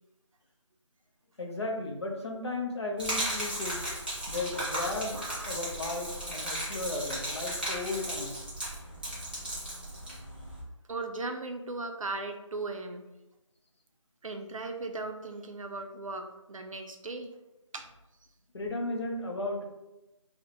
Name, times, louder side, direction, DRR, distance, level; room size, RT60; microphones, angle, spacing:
voice 1, 1.4-3.8 4.3-5.2 5.4-8.5 18.5-19.7, left 2 dB, 55° left, 1 dB, 0.5 m, -35 dB
Gurgling / Liquid, 3.0-10.6, right 1 dB, 20° right, 0.5 m, -36 dB
voice 2, 10.9-13.1 14.2-17.3 17.7-17.9, right 3 dB, 90° right, 5 dB, 0.4 m, -37 dB
2.2 x 2.0 x 3.0 m, 0.99 s
figure-of-eight pair, 170°, 17 cm